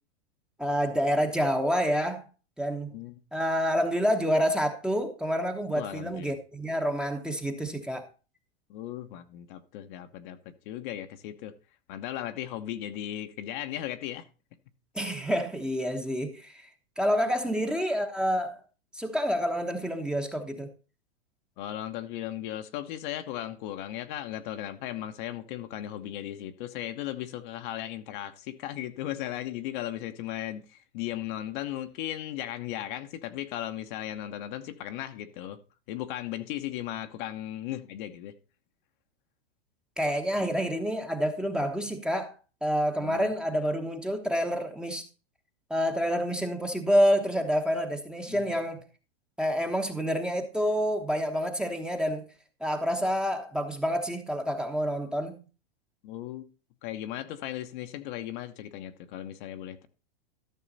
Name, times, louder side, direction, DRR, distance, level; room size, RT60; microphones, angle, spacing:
voice 1, 0.6-2.2 2.6-2.9 3.3-8.1 14.9-16.7 17.0-18.6 18.9-20.7 40.0-42.3 42.6-45.0 45.7-48.8 49.4-52.3 52.6-55.4, equal, 5° right, 1.0 m, -28 dB
voice 2, 2.9-3.2 5.7-6.4 8.7-10.4 10.7-11.5 11.9-14.2 17.4-17.5 21.6-35.6 35.9-38.3 40.4-40.5 43.0-43.3 48.3-48.4 56.0-56.5 56.8-59.9, left 12 dB, 55° left, 1.1 m, -36 dB
13.0 x 6.4 x 4.1 m
hypercardioid pair, 130°, 30 cm